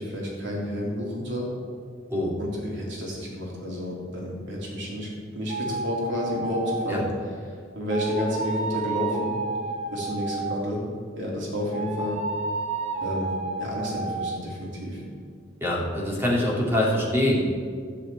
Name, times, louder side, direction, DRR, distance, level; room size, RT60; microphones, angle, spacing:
voice 1, 0.0-1.5 2.4-7.0 7.5-9.4 9.9-10.8 11.2-12.2 13.0-13.3 13.5-15.0, left 1 dB, 65° right, -3 dB, 3.3 m, -30 dB
sound 1, 5.5-7.2 7.9-10.8 11.7-14.4, right 3 dB, 35° right, 0.9 m, -31 dB
voice 2, 15.6-17.4, left 1 dB, 10° right, -3 dB, 2.4 m, -24 dB
13.0 x 4.9 x 8.6 m, 2.1 s
head